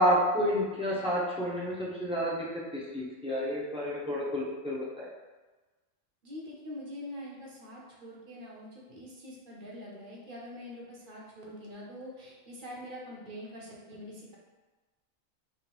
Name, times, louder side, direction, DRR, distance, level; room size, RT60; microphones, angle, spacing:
voice 1, 0.0-5.1, equal, 10° right, -7 dB, 0.3 m, -30 dB
voice 2, 6.2-14.4, left 1 dB, 50° right, -4 dB, 0.7 m, -44 dB
3.6 x 2.5 x 2.9 m, 1.2 s
omnidirectional pair, 1.4 m